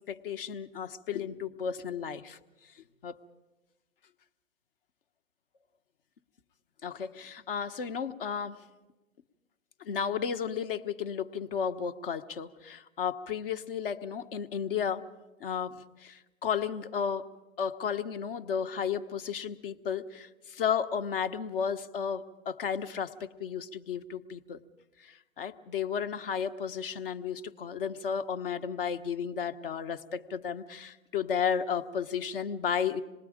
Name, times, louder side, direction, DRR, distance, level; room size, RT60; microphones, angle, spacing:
voice 1, 0.1-2.4 3.0-3.2 6.8-8.6 9.8-15.1 15.4-17.3 17.6-24.6 25.0-33.0, left 7 dB, 40° left, 9 dB, 1.1 m, -33 dB
26.5 x 20.5 x 5.1 m, 1.1 s
hypercardioid pair, 140°, 41 cm